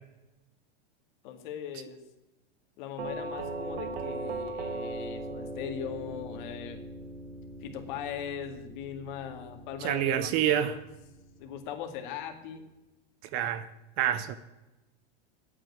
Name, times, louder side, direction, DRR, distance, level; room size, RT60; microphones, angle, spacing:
voice 1, 1.2-2.0 2.8-6.8 7.6-10.8 11.4-12.6, left 8 dB, 50° left, 2.3 m, -39 dB
Doorbell, 3.0-11.8, right 2 dB, 85° right, 1.9 m, -40 dB
voice 2, 9.8-10.7 13.3-13.7 14.0-14.4, right 11 dB, 30° right, 0.5 m, -27 dB
11.0 x 8.7 x 8.4 m
supercardioid pair, 160°, 30 cm